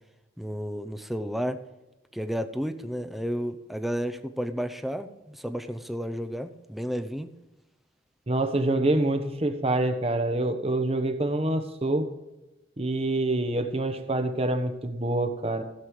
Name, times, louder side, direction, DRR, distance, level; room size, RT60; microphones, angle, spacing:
voice 1, 0.4-1.6 2.1-7.3, equal, ahead, 8 dB, 0.7 m, -32 dB
voice 2, 8.3-12.1 12.8-15.6, right 2 dB, 35° right, 7 dB, 1.1 m, -26 dB
16.0 x 7.6 x 4.9 m, 1.0 s
head